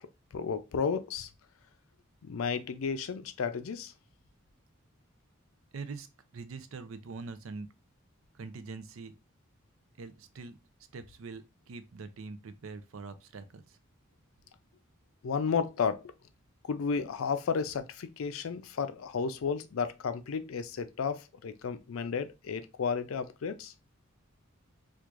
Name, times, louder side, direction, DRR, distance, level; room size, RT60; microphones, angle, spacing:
voice 1, 0.3-1.3 2.2-3.9 15.2-16.1 16.7-23.7, left 5 dB, 80° left, 0.4 m, -33 dB
voice 2, 5.7-6.1 6.3-7.7 8.3-9.1 10.0-10.6 10.9-13.8, right 4 dB, 75° right, 0.5 m, -43 dB
4.5 x 2.4 x 2.4 m
head